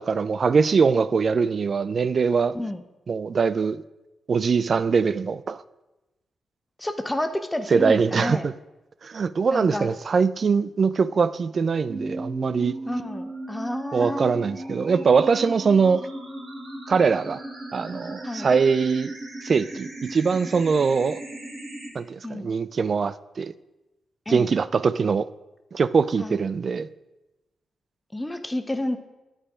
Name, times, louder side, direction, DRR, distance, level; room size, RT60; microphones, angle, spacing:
voice 1, 0.0-2.6 3.1-3.8 4.3-5.6 7.7-8.5 9.0-12.8 13.9-16.1 16.9-17.4 17.7-19.2 19.4-21.2 21.9-23.5 24.3-25.3 25.7-26.9, right 5 dB, 55° right, 0.3 m, -22 dB
voice 2, 6.8-8.5 9.5-9.9 12.9-14.3 18.2-18.5 22.2-22.5 24.3-24.5 26.2-26.4 28.1-29.0, left 1 dB, 15° left, 0.7 m, -30 dB
sound 1, 11.9-21.9, right 1 dB, 75° right, 2.6 m, -37 dB
8.7 x 4.9 x 5.0 m
cardioid pair, 55°, 0 cm